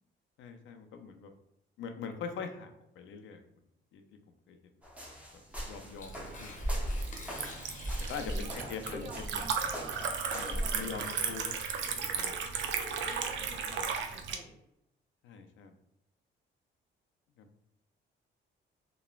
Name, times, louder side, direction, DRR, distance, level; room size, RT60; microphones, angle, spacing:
voice 1, 0.4-1.3 1.8-3.4 3.9-4.0 4.3-4.6 5.6-6.6 8.1-9.5 10.3-12.4 13.0-13.8 15.2-15.7 17.4-17.5, left 6 dB, 75° left, 6 dB, 0.4 m, -43 dB
sound 1, 4.8-11.2, right 1 dB, 5° right, 0.7 m, -38 dB
Tearing, 5.3-12.1, left 3 dB, 40° left, 0.7 m, -49 dB
Liquid, 6.0-14.4, right 6 dB, 70° right, 0.4 m, -36 dB
voice 2, 8.2-11.3 13.4-14.6, right 1 dB, 45° right, -4 dB, 1.4 m, -50 dB
3.0 x 2.1 x 2.3 m, 0.81 s
cardioid pair, 90°, 20 cm